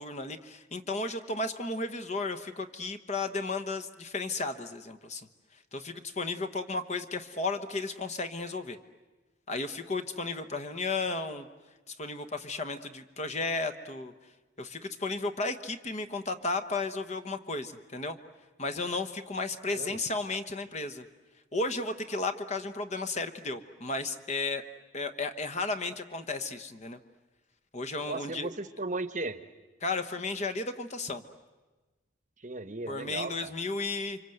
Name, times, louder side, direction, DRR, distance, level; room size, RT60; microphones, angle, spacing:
voice 1, 0.0-5.3 5.7-8.8 9.5-11.5 11.9-14.1 14.6-18.2 18.6-21.0 21.5-24.6 24.9-27.0 27.7-28.5 29.8-31.2 32.9-34.2, left 3 dB, 35° left, 9 dB, 1.1 m, -34 dB
voice 2, 28.1-29.4 32.4-33.3, right 3 dB, 40° right, 11 dB, 1.0 m, -36 dB
29.5 x 25.0 x 7.9 m, 1.2 s
head